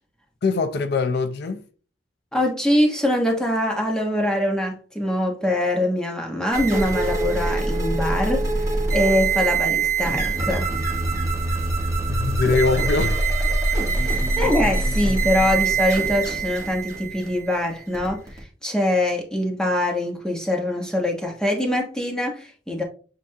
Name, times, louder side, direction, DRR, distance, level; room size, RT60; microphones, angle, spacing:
voice 1, 0.4-1.6 12.1-13.3, left 4 dB, 60° left, 0.4 m, -22 dB
voice 2, 2.3-8.5 8.9-10.7 13.9-18.2 18.6-22.8, left 1 dB, 5° left, 1.0 m, -23 dB
sound 1, 6.5-18.4, right 3 dB, 20° right, 1.3 m, -24 dB
7.6 x 2.6 x 2.7 m
head